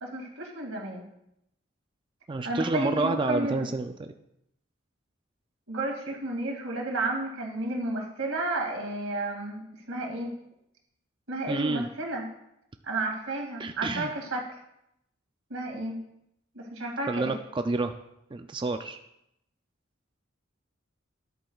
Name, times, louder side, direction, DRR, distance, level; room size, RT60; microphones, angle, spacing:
voice 1, 0.0-1.0 2.4-3.7 5.7-10.3 11.3-12.3 12.8-14.6 15.5-16.0 16.5-17.3, right 2 dB, 85° right, 0 dB, 2.3 m, -32 dB
voice 2, 2.3-4.1 11.5-11.9 13.6-14.1 17.1-17.9 18.3-19.0, right 3 dB, 25° right, 7 dB, 0.4 m, -29 dB
13.0 x 10.5 x 2.4 m, 0.81 s
head